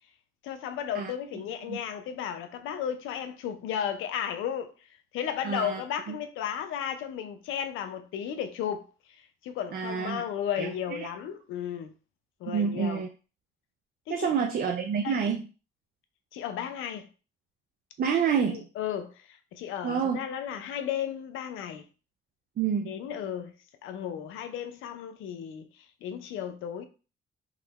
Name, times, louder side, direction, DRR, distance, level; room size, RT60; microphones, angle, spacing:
voice 1, 0.4-4.7 5.1-8.8 9.4-11.9 12.4-13.0 14.1-14.3 15.0-15.1 16.3-17.1 18.5-21.9 22.9-23.5 23.8-25.7 26.0-26.8, left 9 dB, 90° left, 0.5 m, -34 dB
voice 2, 5.4-5.8 6.1-6.2 9.7-10.2 10.6-11.0 12.5-13.1 14.1-15.4 18.0-18.6 19.8-20.2 22.6-23.0, right 7 dB, 50° right, 0.5 m, -28 dB
3.7 x 2.1 x 3.0 m
cardioid pair, 90°, 20 cm